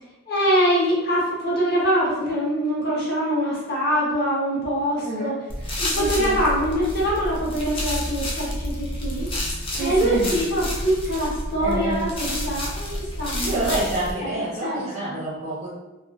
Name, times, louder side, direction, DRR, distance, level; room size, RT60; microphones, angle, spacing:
voice 1, 0.3-5.3 5.8-9.3 9.8-13.7 14.2-14.3 14.6-15.2, equal, 45° left, -6 dB, 0.8 m, -24 dB
voice 2, 5.0-6.3 9.7-10.3 11.6-12.0 13.4-15.7, right 2 dB, 30° right, -9 dB, 0.5 m, -28 dB
sound 1, 5.5-14.1, left 1 dB, 25° left, 0.3 m, -29 dB
2.4 x 2.3 x 2.2 m, 1.1 s
head